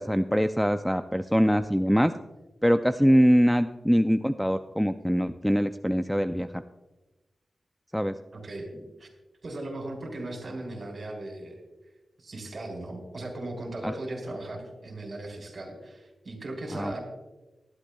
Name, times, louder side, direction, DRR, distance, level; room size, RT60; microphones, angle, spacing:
voice 1, 0.0-2.1 2.6-6.6 7.9-8.1 13.8-13.9 16.7-16.9, equal, ahead, 10 dB, 0.3 m, -23 dB
voice 2, 8.3-8.7 9.0-9.1 9.4-11.6 12.2-17.0, right 2 dB, 45° right, 1 dB, 3.9 m, -37 dB
19.5 x 12.0 x 2.3 m, 1.1 s
wide cardioid pair, 100°, 0 cm